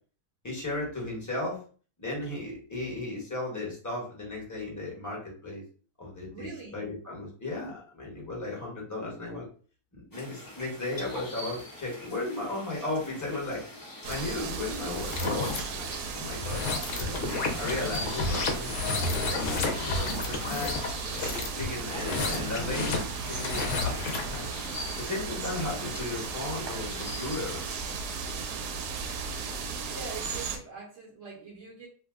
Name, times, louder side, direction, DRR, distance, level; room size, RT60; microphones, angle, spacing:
voice 1, 0.4-1.6 2.0-5.6 6.0-9.5 9.9-13.7 14.1-16.6 16.9-17.1 17.6-20.8 21.2-24.5 25.0-27.7, left 2 dB, 15° left, -3 dB, 0.8 m, -35 dB
voice 2, 6.3-6.9 29.9-31.9, right 4 dB, 50° right, -3 dB, 0.9 m, -43 dB
sound 1, 10.1-27.8, left 1 dB, 30° left, 0.3 m, -45 dB
sound 2, 14.0-30.6, right 5 dB, 90° right, 1.2 m, -36 dB
sound 3, 14.9-15.6 16.3-24.4, left 3 dB, 65° left, 0.9 m, -31 dB
2.8 x 2.1 x 3.5 m, 0.41 s
omnidirectional pair, 1.7 m